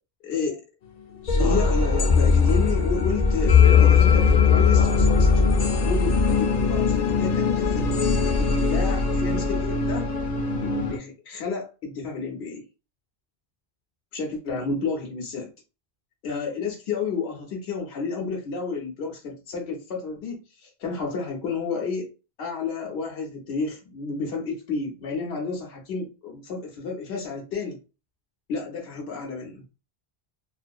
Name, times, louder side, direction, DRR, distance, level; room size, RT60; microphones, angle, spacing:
voice 1, 0.2-0.6 1.3-10.1 10.6-12.6 14.1-15.5 16.2-22.1 22.4-27.8 28.5-29.6, left 4 dB, 80° left, 0 dB, 0.9 m, -31 dB
sound 1, 1.3-11.0, left 5 dB, 50° left, 0.6 m, -20 dB
2.6 x 2.4 x 2.3 m, 0.31 s
omnidirectional pair, 1.0 m